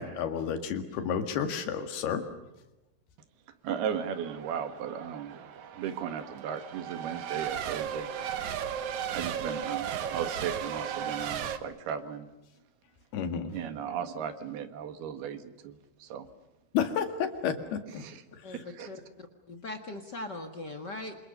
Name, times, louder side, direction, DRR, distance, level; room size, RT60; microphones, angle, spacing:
voice 1, 0.0-2.2 13.1-13.5 16.7-18.0 18.3-18.6, left 7 dB, 85° left, 7 dB, 4.0 m, -31 dB
voice 2, 3.6-5.4 5.7-8.1 9.1-12.3 13.5-16.3 17.9-18.2 18.5-18.9, right 8 dB, 80° right, 8 dB, 3.6 m, -36 dB
Race car auto racing / Accelerating revving vroom / Mechanisms, 3.7-11.6, right 8 dB, 60° right, 2.3 m, -36 dB
voice 3, 18.4-21.1, left 2 dB, 45° left, 5 dB, 1.4 m, -40 dB
28.0 x 27.0 x 6.7 m, 0.96 s
omnidirectional pair, 4.4 m